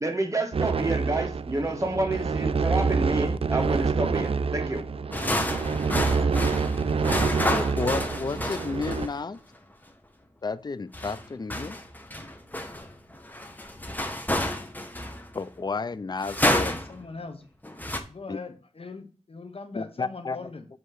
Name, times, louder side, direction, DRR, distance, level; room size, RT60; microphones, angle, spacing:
voice 1, 0.0-4.8, right 2 dB, 25° right, 4 dB, 1.5 m, -29 dB
sound 1, 0.5-9.1, right 5 dB, 50° right, 0.4 m, -27 dB
sound 2, 5.1-9.2 10.9-15.4 16.2-17.0 17.6-18.0, left 1 dB, 15° left, 1.0 m, -29 dB
voice 2, 7.5-9.4 10.4-11.8 15.3-16.7 18.3-18.4 19.7-20.4, left 4 dB, 35° left, 15 dB, 0.4 m, -32 dB
voice 3, 16.6-17.5 18.1-20.7, left 4 dB, 50° left, 6 dB, 0.9 m, -41 dB
7.8 x 3.0 x 6.2 m, 0.37 s
cardioid pair, 55°, 12 cm